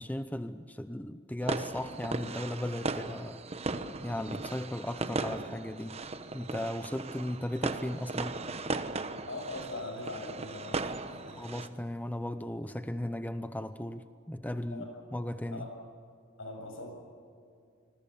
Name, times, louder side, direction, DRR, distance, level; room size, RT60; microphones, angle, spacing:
voice 1, 0.0-3.4 4.0-6.0 6.3-8.4 11.3-15.7, left 1 dB, 10° left, 10 dB, 0.7 m, -36 dB
sound 1, 1.4-11.7, right 3 dB, 30° right, 1.1 m, -37 dB
voice 2, 9.3-11.4 14.7-14.9 15.5-15.7 16.4-17.0, left 2 dB, 70° left, 3 dB, 7.5 m, -41 dB
27.5 x 21.0 x 7.1 m, 2.3 s
head